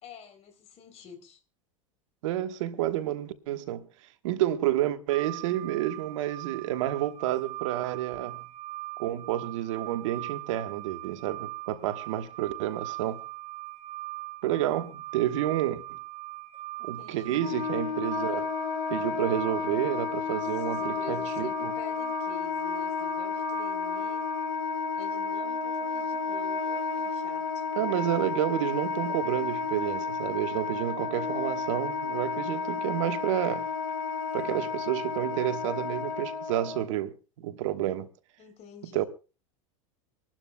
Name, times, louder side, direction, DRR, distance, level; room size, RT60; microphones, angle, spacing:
voice 1, 0.0-1.4 16.8-17.4 20.2-24.3 24.9-27.6 32.5-32.9 38.4-39.1, left 8 dB, 40° left, 3.7 m, -48 dB
voice 2, 2.2-3.9 4.2-8.4 9.0-13.2 14.4-15.8 16.8-18.5 18.9-21.7 27.8-33.7 34.3-38.1 38.9-39.0, right 13 dB, 70° right, 1.4 m, -30 dB
sound 1, 5.1-24.5, right 20 dB, 35° right, 3.8 m, -41 dB
Wind instrument woodwind instrument, 17.3-36.8, left 5 dB, 75° left, 1.9 m, -32 dB
26.0 x 12.0 x 2.3 m
hypercardioid pair, 100°, 17 cm